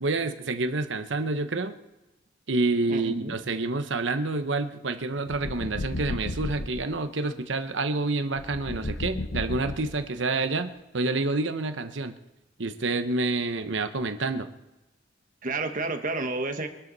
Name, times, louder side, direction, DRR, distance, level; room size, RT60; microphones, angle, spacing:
voice 1, 0.0-1.8 2.5-12.2 12.6-14.5, right 3 dB, 70° right, 8 dB, 1.0 m, -28 dB
voice 2, 2.9-3.4 15.4-16.7, right 2 dB, 45° right, 6 dB, 1.4 m, -30 dB
sound 1, 5.3-6.9 8.4-10.2, left 1 dB, 60° left, 1.0 m, -34 dB
24.0 x 12.0 x 4.1 m, 1.0 s
head